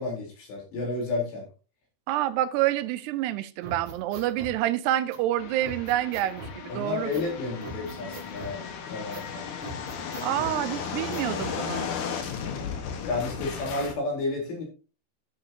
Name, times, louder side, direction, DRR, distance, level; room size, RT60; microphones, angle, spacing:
voice 1, 0.0-1.5 3.7-3.8 6.7-9.4 10.4-10.5 13.1-14.6, left 3 dB, 80° left, 6.1 m, -31 dB
voice 2, 2.1-7.1 10.2-11.9, right 13 dB, 85° right, 2.7 m, -28 dB
sound 1, 3.6-4.6 5.1-5.2 5.6-6.6 7.1-7.3 7.6-8.6 9.1-9.3 9.6-10.6 11.1-11.6, right 3 dB, 65° right, 4.1 m, -41 dB
sound 2, 5.4-13.9, left 7 dB, 60° left, 2.4 m, -35 dB
13.5 x 7.9 x 2.8 m
omnidirectional pair, 4.8 m